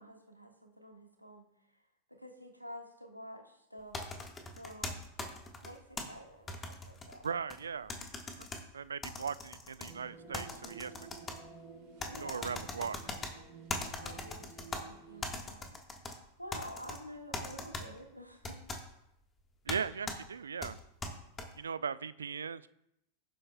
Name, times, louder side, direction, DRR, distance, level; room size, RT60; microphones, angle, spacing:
voice 1, 0.0-1.5 2.1-4.0 4.5-5.0 5.6-7.3 12.1-12.5 14.0-15.8 16.1-18.6, equal, 90° left, 3 dB, 1.6 m, -49 dB
sound 1, 3.9-6.0 6.5-7.6 7.9-8.6 9.0-9.9 10.3-11.4 12.0-13.3 13.7-14.8 15.2-16.1 16.5-17.0 17.3-17.8 18.4-18.8 19.7-19.8 20.1-20.2 20.6-21.4, left 3 dB, 20° left, 1.5 m, -40 dB
voice 2, 7.2-7.9 8.3-8.5 8.7-10.9 12.2-13.0 19.7-20.8 21.6-22.7, right 6 dB, 70° right, 17 dB, 0.3 m, -38 dB
sound 2, 9.8-15.3, right 5 dB, 45° right, 3.0 m, -53 dB
16.0 x 7.6 x 2.3 m, 0.81 s
figure-of-eight pair, 90°, 0 cm